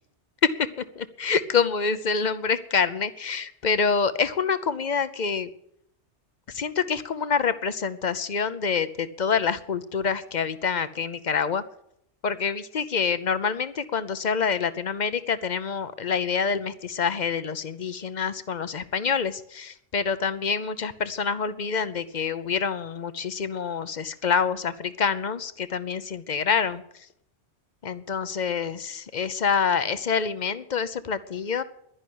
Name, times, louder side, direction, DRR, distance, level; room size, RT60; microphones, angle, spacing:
voice 1, 1.0-5.5 6.5-11.6 12.2-26.8 27.8-31.6, left 6 dB, 45° left, 14 dB, 0.8 m, -26 dB
11.5 x 11.0 x 9.4 m, 0.76 s
omnidirectional pair, 1.2 m